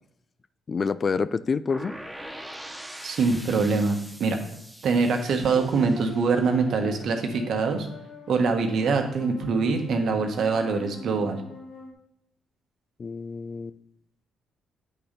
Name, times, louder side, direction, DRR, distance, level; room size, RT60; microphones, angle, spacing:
voice 1, 0.7-2.0 13.0-13.8, left 5 dB, 40° left, 15 dB, 0.3 m, -27 dB
sound 1, 1.7-7.6, right 1 dB, 5° right, 0.8 m, -43 dB
voice 2, 3.0-4.4 4.8-7.9 8.3-11.4, right 4 dB, 65° right, 4 dB, 1.3 m, -24 dB
sound 2, 5.5-11.9, left 3 dB, 60° left, 1.5 m, -42 dB
8.7 x 4.2 x 5.2 m, 0.78 s
cardioid pair, 90°, 0 cm